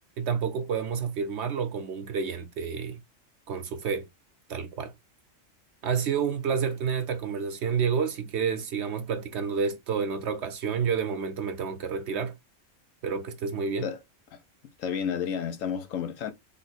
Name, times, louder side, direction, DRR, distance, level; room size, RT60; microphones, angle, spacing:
voice 1, 0.2-3.0 3.5-4.1 4.5-4.9 5.8-12.3 13.0-13.9, right 6 dB, 65° right, 0.8 m, -29 dB
voice 2, 14.8-16.3, left 7 dB, 85° left, 1.1 m, -31 dB
3.5 x 2.5 x 4.0 m
omnidirectional pair, 1.3 m